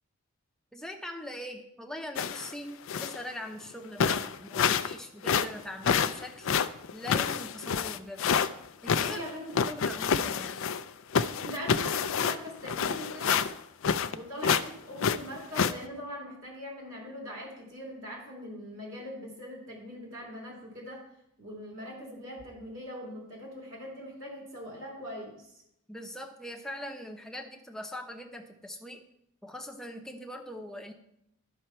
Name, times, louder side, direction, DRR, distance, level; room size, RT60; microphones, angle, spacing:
voice 1, 0.7-6.5 6.9-8.3 8.8-9.2 9.7-10.6 25.9-29.0 29.4-30.9, left 1 dB, 5° left, 3 dB, 0.7 m, -41 dB
sound 1, 2.2-2.5 2.9-3.2 3.7-3.8 4.0-4.9 5.2-8.5 8.9-10.9 11.1-14.2 14.4-14.7 15.0-15.7, left 7 dB, 60° left, 0.4 m, -28 dB
voice 2, 9.0-9.6 11.4-13.5 14.1-21.0 21.4-25.5, equal, 60° right, -3 dB, 2.7 m, -41 dB
12.0 x 5.7 x 4.3 m, 0.79 s
head